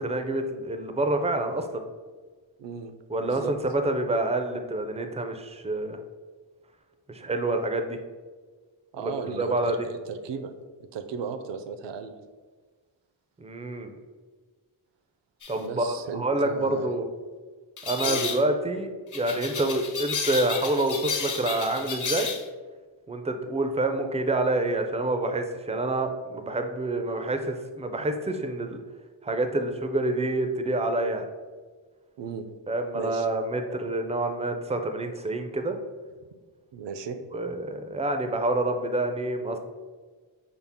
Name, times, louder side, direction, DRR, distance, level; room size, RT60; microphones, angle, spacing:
voice 1, 0.0-1.8 3.1-6.0 7.1-8.0 9.0-9.9 13.4-14.0 15.5-17.1 17.8-22.3 23.1-28.8 29.2-31.3 32.7-35.8 37.3-39.6, right 2 dB, 15° right, 6 dB, 0.3 m, -27 dB
voice 2, 2.6-2.9 3.2-3.5 8.9-10.5 10.9-12.1 15.6-16.9 18.0-18.2 32.2-32.5 32.9-33.3 36.7-37.2, right 6 dB, 65° right, 9 dB, 0.5 m, -35 dB
sound 1, 15.4-15.6 17.8-18.4 19.1-22.4, left 5 dB, 40° left, 0.6 m, -32 dB
5.6 x 2.0 x 3.5 m, 1.4 s
cardioid pair, 70°, 48 cm